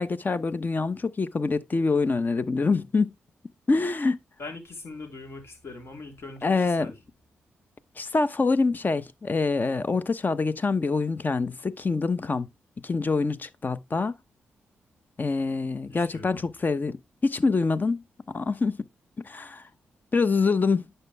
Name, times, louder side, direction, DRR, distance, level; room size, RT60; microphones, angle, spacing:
voice 1, 0.0-3.1 3.7-4.2 6.4-6.9 8.0-12.5 12.8-14.1 15.2-18.8 19.2-19.6 20.1-20.8, left 4 dB, 40° left, 0.9 m, -25 dB
voice 2, 4.4-6.9 15.9-16.5, left 3 dB, 60° left, 3.7 m, -41 dB
11.0 x 5.7 x 3.4 m
supercardioid pair, 55°, 5 cm